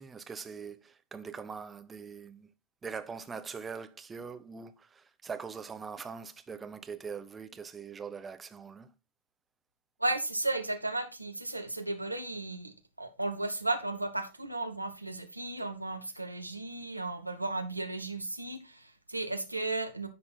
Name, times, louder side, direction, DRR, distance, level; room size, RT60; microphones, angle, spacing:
voice 1, 0.0-2.5 2.8-8.9, right 5 dB, 15° right, 0.7 m, -42 dB
voice 2, 10.0-20.1, right 2 dB, 85° right, 0.9 m, -34 dB
10.0 x 3.8 x 3.9 m
figure-of-eight pair, 90°, 0 cm